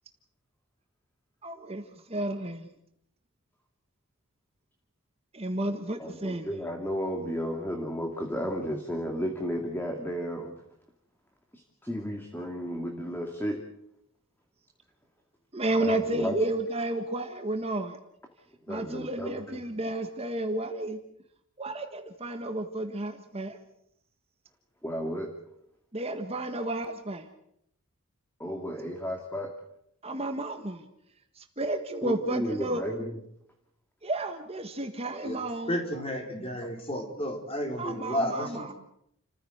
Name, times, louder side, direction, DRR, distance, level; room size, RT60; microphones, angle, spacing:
voice 1, 1.4-2.7 5.3-6.5 15.5-18.0 18.7-21.0 21.6-23.6 25.9-27.3 30.0-30.8 31.4-32.8 34.0-35.8 37.8-38.7, right 1 dB, 25° right, 5 dB, 1.6 m, -32 dB
voice 2, 6.0-10.5 11.5-13.6 15.8-16.3 18.7-19.6 24.8-25.3 28.4-29.5 32.0-33.2 36.6-36.7, equal, 10° left, 3 dB, 2.3 m, -33 dB
voice 3, 35.7-38.7, equal, 25° left, 3 dB, 4.6 m, -32 dB
30.0 x 15.0 x 8.1 m, 0.74 s
head